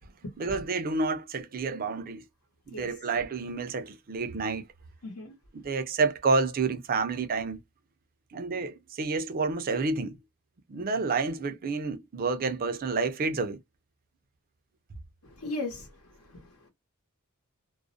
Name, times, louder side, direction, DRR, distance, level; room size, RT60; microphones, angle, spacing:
voice 1, 0.4-2.2 2.7-4.7 5.5-7.6 8.3-10.2 10.7-13.6, right 4 dB, 40° right, 0.5 m, -29 dB
voice 2, 5.0-5.3 15.2-16.7, left 2 dB, 75° left, 0.9 m, -38 dB
2.4 x 2.0 x 2.4 m
head